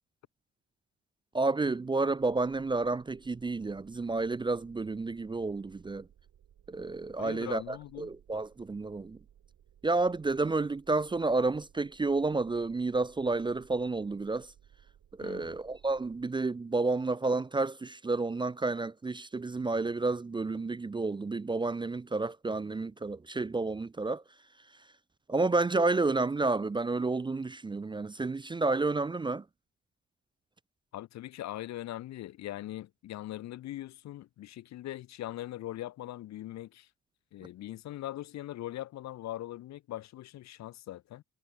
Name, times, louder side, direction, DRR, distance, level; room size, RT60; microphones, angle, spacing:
voice 1, 1.3-6.1 6.7-9.2 9.8-14.5 15.2-24.2 25.3-29.4, right 3 dB, 15° right, 0.4 m, -30 dB
Ominous II, 2.2-16.2, right 10 dB, 65° right, 7.3 m, -61 dB
voice 2, 7.2-8.1 15.2-15.6 30.9-36.9 37.3-41.2, left 14 dB, 65° left, 0.6 m, -41 dB
cardioid pair, 90°, 30 cm